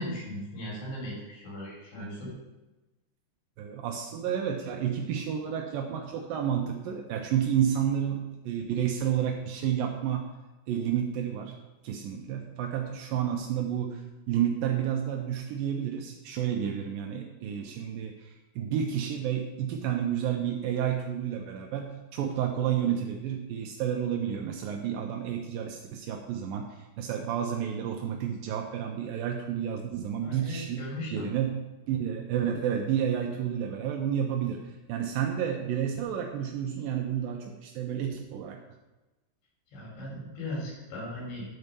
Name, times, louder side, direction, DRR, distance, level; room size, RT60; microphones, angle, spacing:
voice 1, 0.0-2.3 30.2-31.3 39.7-41.5, left 1 dB, 75° left, -4 dB, 5.4 m, -37 dB
voice 2, 3.6-10.3 10.7-11.5 11.8-14.0 14.3-30.8 31.1-38.6, right 9 dB, 90° right, 2 dB, 2.0 m, -30 dB
11.0 x 4.5 x 6.8 m, 1.1 s
omnidirectional pair, 5.1 m